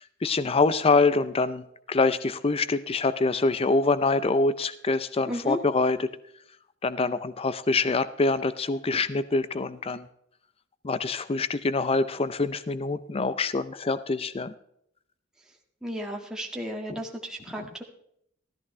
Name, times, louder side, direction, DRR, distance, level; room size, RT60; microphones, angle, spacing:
voice 1, 0.0-1.6 1.9-6.1 6.8-10.1 10.8-14.5 17.6-17.7, left 3 dB, 30° left, 14 dB, 0.5 m, -25 dB
voice 2, 5.3-5.6 15.8-17.8, equal, 5° right, 0 dB, 1.7 m, -34 dB
16.0 x 13.5 x 3.2 m, 0.71 s
head